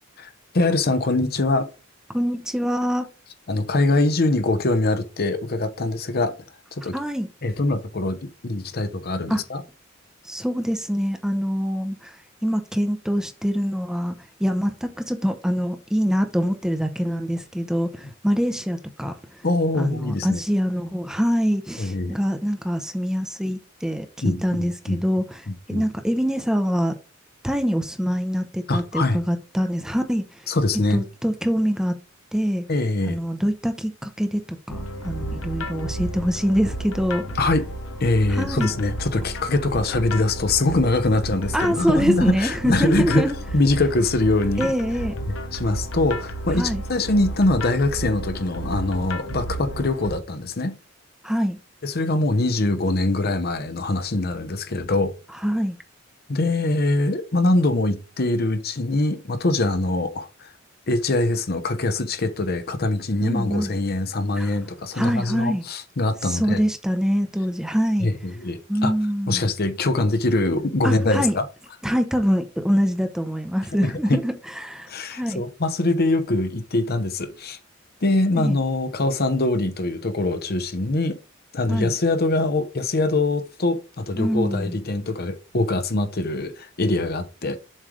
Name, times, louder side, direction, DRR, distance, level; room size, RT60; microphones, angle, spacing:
voice 1, 0.2-1.7 3.5-6.3 6.7-6.9 7.4-9.6 19.4-20.4 21.8-22.2 24.2-25.0 25.5-25.8 28.7-29.2 30.5-31.0 32.7-33.2 37.4-37.7 38.0-44.7 45.3-50.8 51.8-55.1 56.3-60.5 60.9-66.6 68.0-68.9 69.3-71.4 73.8-74.2 74.9-77.6 78.0-81.2 81.5-87.6, left 2 dB, 50° left, 0.8 m, -23 dB
voice 2, 2.1-3.1 6.9-7.3 9.3-9.4 10.2-19.4 19.7-25.4 25.7-27.0 27.4-30.5 30.9-32.0 32.3-32.6 33.0-34.4 34.7-37.2 38.3-38.7 41.5-43.3 44.6-45.1 46.6-46.8 51.2-51.6 55.4-55.8 63.2-63.7 64.4-64.5 64.9-65.6 66.2-68.1 68.7-69.5 70.8-71.4 71.8-75.4 78.3-78.6 81.7-81.9 84.2-84.8, equal, 5° right, 0.7 m, -24 dB
sound 1, 34.7-50.1, right 1 dB, 90° left, 0.9 m, -32 dB
7.4 x 3.2 x 5.0 m
head